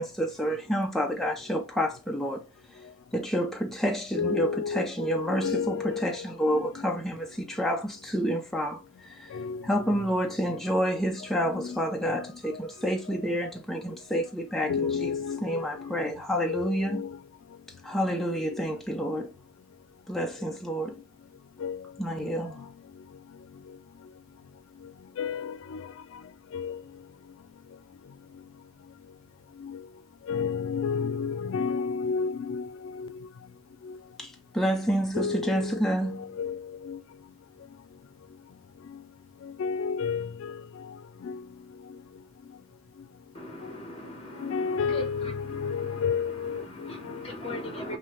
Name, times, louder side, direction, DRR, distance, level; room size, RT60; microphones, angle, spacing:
voice 1, 0.0-2.4 3.1-9.4 9.6-15.1 15.4-17.0 17.8-19.3 20.1-21.0 22.0-22.6 34.2-36.4, equal, ahead, 0.5 m, -29 dB
voice 2, 4.2-6.9 9.3-9.9 11.5-11.8 12.0-12.2 14.7-16.1 16.5-17.2 18.4-18.6 21.6-21.9 22.2-22.3 25.2-25.9 26.5-26.8 29.6-29.8 30.3-33.2 33.8-34.0 35.1-37.0 39.4-40.6 40.9-41.0 41.2-41.4 43.6-43.7 44.4-47.3, left 6 dB, 85° left, 0.3 m, -32 dB
voice 3, 43.3-48.0, left 1 dB, 30° left, 1.3 m, -40 dB
5.6 x 2.7 x 3.1 m
head